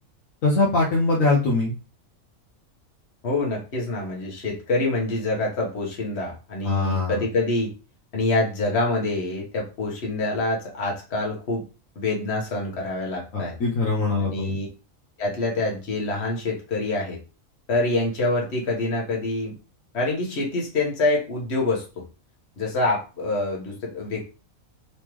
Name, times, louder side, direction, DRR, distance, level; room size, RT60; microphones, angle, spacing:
voice 1, 0.4-1.7 6.6-7.2 13.3-14.6, left 3 dB, 70° left, -3 dB, 1.3 m, -22 dB
voice 2, 3.2-7.7 8.1-11.6 11.9-13.5 14.2-14.7 15.2-17.2 17.7-19.6 19.9-21.8 22.6-24.3, left 2 dB, 50° left, -2 dB, 1.6 m, -26 dB
4.0 x 3.6 x 3.1 m, 0.33 s
omnidirectional pair, 1.4 m